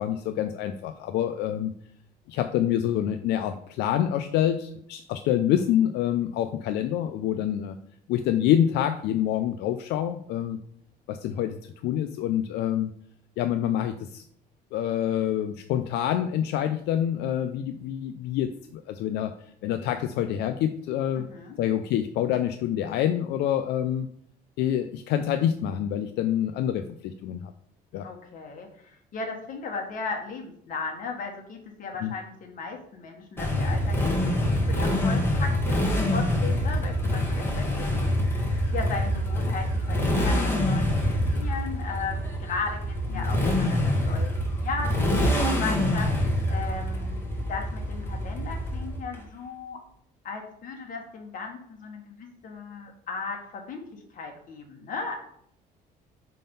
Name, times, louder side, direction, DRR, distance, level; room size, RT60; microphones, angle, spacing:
voice 1, 0.0-1.7 2.3-7.8 8.1-10.6 11.1-12.9 13.4-14.2 14.7-19.3 19.6-21.3 21.6-24.1 24.6-27.5 27.9-28.1 32.0-32.1, left 10 dB, 80° left, 8 dB, 0.4 m, -26 dB
voice 2, 21.2-21.6 28.0-41.1 41.3-44.4 44.6-49.8 50.2-55.2, left 4 dB, 55° left, 2 dB, 1.6 m, -36 dB
Motorcycle, 33.4-49.2, left 1 dB, 15° left, 1.7 m, -25 dB
5.1 x 3.8 x 5.4 m, 0.68 s
cardioid pair, 110°, 17 cm